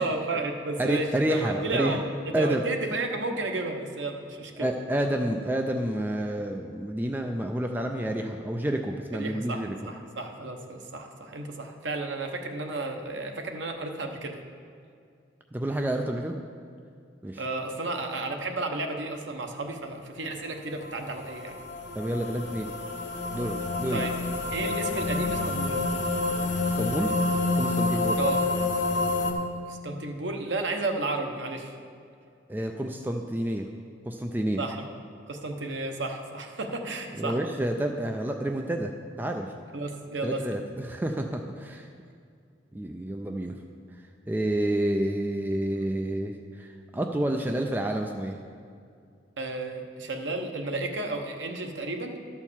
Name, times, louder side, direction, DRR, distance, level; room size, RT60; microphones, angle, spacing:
voice 1, 0.0-2.0 2.3-4.7 9.1-14.4 17.4-21.6 23.9-24.2 24.5-25.8 28.2-28.4 29.7-31.7 34.6-34.8 35.3-37.4 39.7-40.6 49.4-52.2, right 2 dB, 85° right, 4 dB, 0.9 m, -32 dB
voice 2, 0.8-2.0 2.3-2.6 4.6-9.7 15.5-16.3 17.2-17.4 21.9-22.7 23.3-24.0 26.8-27.1 27.5-28.2 32.5-33.7 34.1-34.6 37.2-39.5 40.2-41.9 42.7-43.5 44.3-48.4, right 1 dB, 10° right, 3 dB, 0.3 m, -29 dB
sound 1, 20.8-29.3, left 3 dB, 75° left, 1.1 m, -28 dB
12.0 x 4.5 x 7.2 m, 2.3 s
head